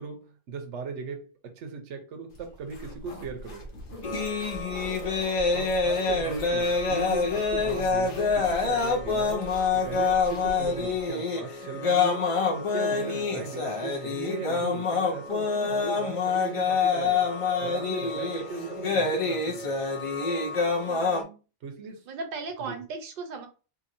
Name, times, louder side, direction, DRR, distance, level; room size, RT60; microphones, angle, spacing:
voice 1, 0.0-3.7 5.5-17.3 17.6-19.8 21.6-22.0 22.7-22.8, right 4 dB, 85° right, 1.0 m, -38 dB
sound 1, 2.3-11.1, right 1 dB, 90° left, 1.1 m, -43 dB
voice 2, 3.9-4.3 4.8-5.3 20.8-21.4 22.1-23.5, right 4 dB, 55° right, 0.8 m, -39 dB
sound 2, 4.0-21.2, left 4 dB, 60° left, 0.3 m, -26 dB
2.8 x 2.6 x 2.5 m
omnidirectional pair, 1.2 m